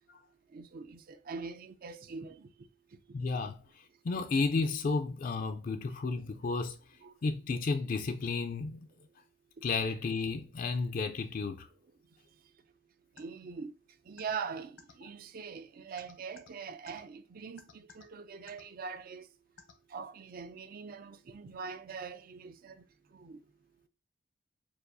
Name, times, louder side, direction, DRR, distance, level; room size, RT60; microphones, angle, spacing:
voice 1, 0.5-3.0 7.0-7.1 13.2-13.7 14.1-19.3 19.9-22.8 23.1-23.4, right 5 dB, 50° right, 0.4 m, -43 dB
voice 2, 3.1-3.6 4.0-6.8 7.2-8.8 9.6-11.7, left 4 dB, 45° left, 0.4 m, -32 dB
sound 1, 13.2-13.3 14.2-14.3 14.8-14.9 16.0-16.5 16.9-17.0 17.6-18.0 18.5-18.6 19.6-19.7, left 5 dB, 85° left, 0.9 m, -52 dB
6.8 x 2.4 x 2.6 m
head